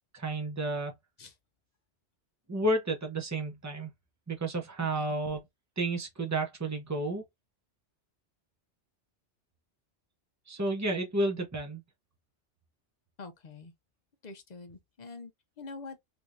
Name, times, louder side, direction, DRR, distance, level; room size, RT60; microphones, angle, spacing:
voice 1, 0.1-0.9 2.5-3.9 4.3-5.4 5.8-7.2 10.5-11.8, right 2 dB, 15° right, 0.7 m, -31 dB
voice 2, 4.8-5.2 13.2-13.7 14.2-15.3 15.6-16.0, left 3 dB, 45° left, 0.7 m, -45 dB
3.4 x 2.9 x 2.5 m
omnidirectional pair, 1.2 m